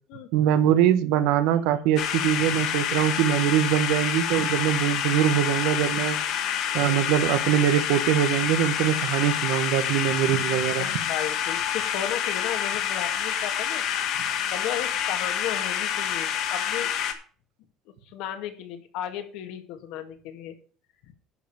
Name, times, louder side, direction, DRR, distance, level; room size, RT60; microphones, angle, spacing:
voice 1, 0.3-6.2 6.7-10.9, right 11 dB, 85° right, 11 dB, 1.1 m, -23 dB
sound 1, 2.0-17.1, left 9 dB, 55° left, 1.9 m, -28 dB
voice 2, 10.8-14.2 14.5-16.9 18.1-20.5, left 11 dB, 75° left, 7 dB, 2.0 m, -34 dB
11.0 x 5.3 x 6.9 m, 0.41 s
cardioid pair, 150°, 0 cm